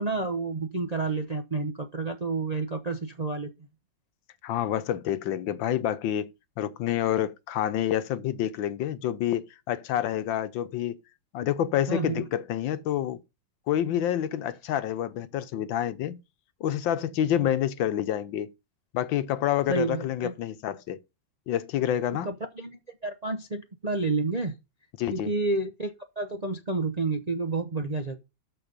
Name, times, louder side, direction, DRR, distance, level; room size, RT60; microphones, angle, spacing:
voice 1, 0.0-3.5 11.9-12.3 19.7-20.3 22.2-24.6 25.1-28.2, right 3 dB, 40° right, 0.5 m, -30 dB
voice 2, 4.4-6.3 6.6-11.0 11.3-13.2 13.7-16.2 16.6-18.5 18.9-21.0 21.5-22.3 25.0-25.3, left 11 dB, 90° left, 1.5 m, -28 dB
13.0 x 4.6 x 5.2 m
omnidirectional pair, 2.0 m